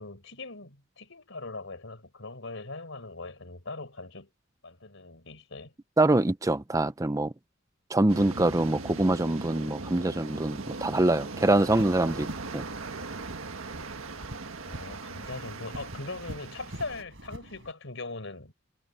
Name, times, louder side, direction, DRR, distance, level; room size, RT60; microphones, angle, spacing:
voice 1, 0.0-4.3 4.6-5.7 14.6-18.5, left 3 dB, 70° left, 4.5 m, -40 dB
voice 2, 6.0-7.3 7.9-12.3 12.5-12.6, right 2 dB, 15° right, 0.7 m, -24 dB
sound 1, 8.1-17.0, right 3 dB, 90° right, 1.7 m, -39 dB
sound 2, 11.6-17.7, right 1 dB, 70° right, 5.0 m, -45 dB
head